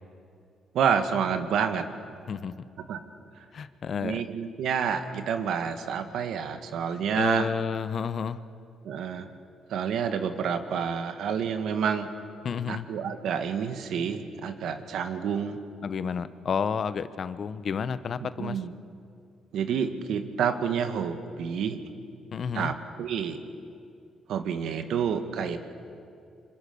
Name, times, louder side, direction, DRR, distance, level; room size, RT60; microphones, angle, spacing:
voice 1, 0.7-1.9 2.9-3.0 4.0-7.5 8.8-9.3 9.7-12.1 12.7-15.6 18.4-18.7 19.5-21.8 22.5-23.4 24.3-25.6, right 7 dB, 75° right, 8 dB, 1.9 m, -28 dB
voice 2, 3.5-4.2 7.1-8.4 12.4-12.9 15.8-18.6 22.3-22.7, left 6 dB, 50° left, 13 dB, 1.0 m, -31 dB
26.0 x 26.0 x 7.0 m, 2.5 s
cardioid pair, 90°, 0 cm